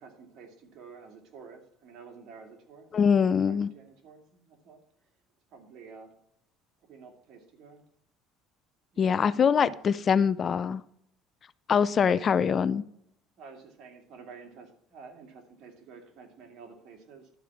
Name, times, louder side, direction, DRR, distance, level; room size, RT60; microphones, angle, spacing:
voice 1, 0.0-4.8 5.5-6.2 6.8-7.8 8.9-9.0 9.3-9.8 12.1-12.3 13.4-17.3, right 5 dB, 60° right, 2.4 m, -50 dB
voice 2, 2.9-3.7 9.0-10.8 11.7-12.8, left 7 dB, 35° left, 0.4 m, -23 dB
12.0 x 4.7 x 7.2 m
supercardioid pair, 105°, 0 cm